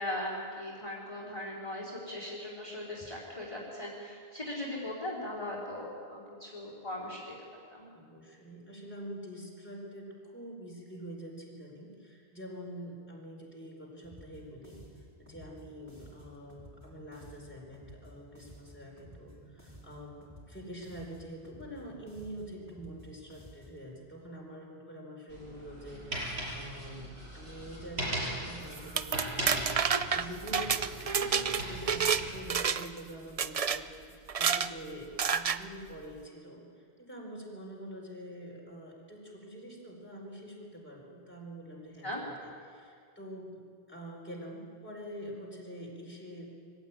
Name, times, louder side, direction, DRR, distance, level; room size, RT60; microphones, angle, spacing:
voice 1, 0.0-7.3 7.7-7.9 42.0-42.2, left 1 dB, 30° left, -4 dB, 3.9 m, -39 dB
voice 2, 7.9-43.6 43.9-46.6, equal, 10° left, -2 dB, 4.6 m, -46 dB
sound 1, 14.0-23.9, equal, 10° right, 6.1 m, -54 dB
sound 2, 25.3-32.4, right 1 dB, 80° right, 6.6 m, -39 dB
sound 3, 28.8-32.2 32.5-33.0 33.4-33.8 34.3-34.7 35.2-35.6, right 6 dB, 40° right, 0.6 m, -29 dB
23.5 x 15.5 x 9.2 m, 2.3 s
omnidirectional pair, 1.1 m